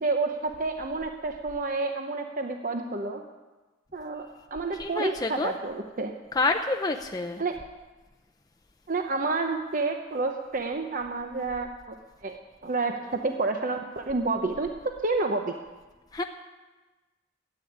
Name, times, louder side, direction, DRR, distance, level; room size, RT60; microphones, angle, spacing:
voice 1, 0.0-3.2 3.9-4.3 4.5-6.1 7.4-7.5 8.9-11.7 12.2-12.4 12.6-14.7 15.0-15.5, right 3 dB, 45° right, 4 dB, 0.8 m, -29 dB
voice 2, 4.7-5.6 6.3-7.4 16.1-16.2, left 3 dB, 20° left, 4 dB, 0.6 m, -28 dB
13.0 x 8.7 x 9.4 m, 1.2 s
head